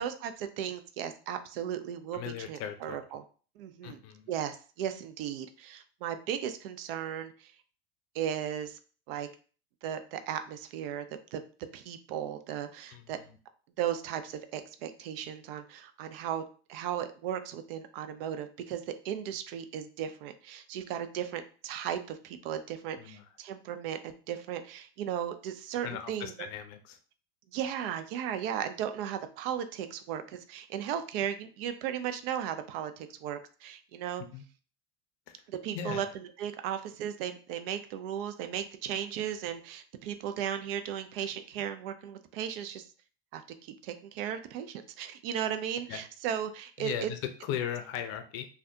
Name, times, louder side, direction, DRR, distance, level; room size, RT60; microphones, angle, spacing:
voice 1, 0.0-3.2 3.6-4.0 4.3-7.5 8.1-8.8 9.1-9.3 9.8-11.4 11.7-13.2 13.8-16.4 16.7-26.3 27.5-34.2 35.5-42.9 43.3-43.4 43.8-47.1, right 9 dB, 65° right, 9 dB, 0.5 m, -36 dB
voice 2, 2.1-3.0 3.8-4.3 12.9-13.0 23.0-23.2 25.8-27.0 34.3-34.4 35.3-35.4 35.7-36.0 45.9-46.0 46.8-48.5, left 9 dB, 50° left, 9 dB, 0.5 m, -37 dB
3.4 x 2.3 x 2.7 m, 0.39 s
hypercardioid pair, 85°, 32 cm